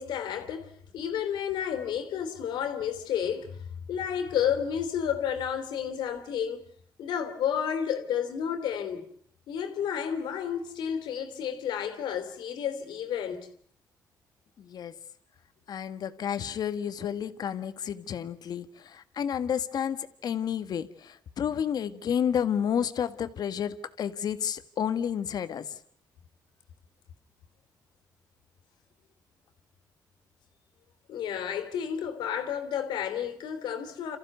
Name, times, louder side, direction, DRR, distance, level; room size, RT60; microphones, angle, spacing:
voice 1, 0.0-3.6 3.9-6.6 7.0-9.0 9.5-13.5 31.1-34.2, left 8 dB, 80° left, 3.1 m, -31 dB
voice 2, 14.6-14.9 15.7-25.8, left 8 dB, 65° left, 1.6 m, -31 dB
28.0 x 15.0 x 9.4 m
cardioid pair, 85°, 7 cm